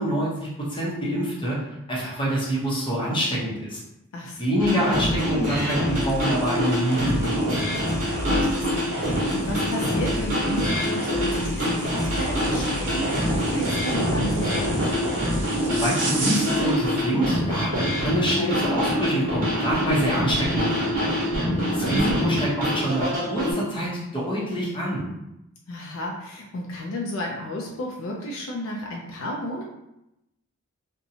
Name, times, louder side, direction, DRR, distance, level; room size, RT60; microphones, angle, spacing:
voice 1, 0.0-1.6 1.9-3.8 4.4-7.9 15.7-21.1 21.8-25.0, right 1 dB, 25° left, -5 dB, 0.8 m, -26 dB
voice 2, 4.1-4.4 8.3-14.8 21.5-21.9 25.7-29.6, left 1 dB, 65° left, -1 dB, 0.4 m, -32 dB
sound 1, 4.6-23.5, equal, 40° right, 1.0 m, -25 dB
sound 2, 5.8-16.8, right 1 dB, 55° right, 0.6 m, -33 dB
2.6 x 2.2 x 2.7 m, 0.86 s
head